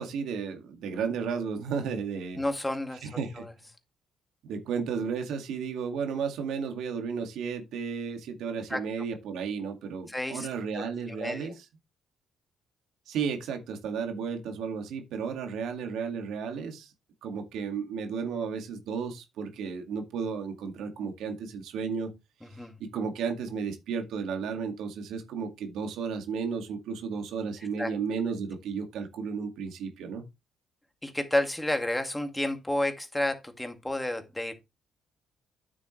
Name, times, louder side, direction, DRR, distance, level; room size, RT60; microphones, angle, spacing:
voice 1, 0.0-2.4 3.0-3.5 4.4-11.6 13.1-16.9 17.2-22.1 22.8-30.2, right 6 dB, 85° right, 2.1 m, -33 dB
voice 2, 2.4-3.1 3.4-3.5 8.7-8.8 10.1-10.5 10.7-11.5 22.6-22.7 27.8-27.9 31.0-34.5, left 1 dB, 10° left, 2.0 m, -31 dB
9.3 x 7.4 x 3.2 m
cardioid pair, 90°, 0 cm